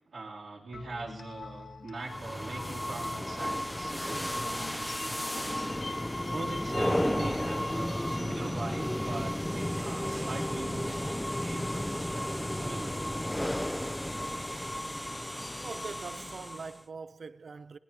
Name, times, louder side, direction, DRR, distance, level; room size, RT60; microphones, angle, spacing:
voice 1, 0.1-13.1, right 3 dB, 75° right, 3.0 m, -42 dB
sound 1, 0.7-10.5, left 4 dB, 75° left, 1.5 m, -47 dB
sound 2, 2.0-16.8, left 1 dB, 5° left, 0.4 m, -33 dB
voice 2, 15.6-17.8, right 4 dB, 60° right, 0.4 m, -43 dB
20.5 x 18.0 x 2.8 m
wide cardioid pair, 150°, 0 cm